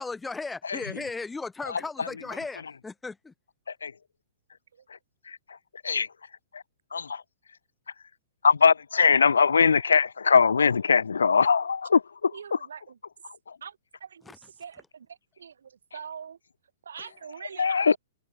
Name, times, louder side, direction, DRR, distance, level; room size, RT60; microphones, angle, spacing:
voice 1, 0.0-3.3 14.3-14.4, left 3 dB, 10° left, 0.7 m, -36 dB
voice 2, 1.7-2.1 3.8-3.9 5.8-6.1 6.9-7.2 8.4-12.6 13.5-13.6 17.6-18.0, left 5 dB, 90° left, 1.0 m, -22 dB
voice 3, 12.3-13.0 13.6-15.1 15.4-16.4 16.9-17.7, right 7 dB, 80° right, 1.8 m, -43 dB
hypercardioid pair, 130°, 0 cm